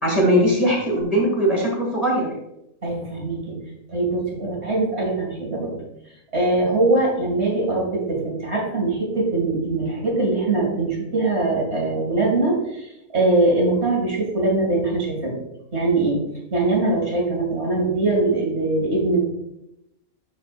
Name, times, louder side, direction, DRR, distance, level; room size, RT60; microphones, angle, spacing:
voice 1, 0.0-2.3, equal, 25° left, -3 dB, 1.9 m, -20 dB
voice 2, 2.8-3.6 3.9-5.7 6.3-15.4 15.7-16.2 16.5-19.2, right 2 dB, 45° right, -3 dB, 2.6 m, -22 dB
12.0 x 4.9 x 2.5 m, 0.86 s
omnidirectional pair, 1.5 m